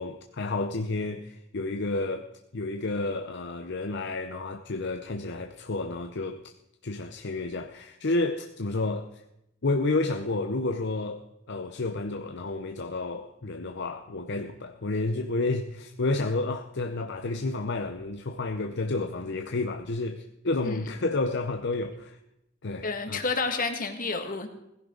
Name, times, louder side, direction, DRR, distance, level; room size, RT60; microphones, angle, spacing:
voice 1, 0.0-6.5 6.8-9.2 9.6-11.2 11.5-22.2 22.6-23.2, left 2 dB, 60° left, 0.8 m, -30 dB
voice 2, 22.8-24.5, left 3 dB, 45° left, 2.0 m, -30 dB
17.5 x 15.5 x 3.9 m
head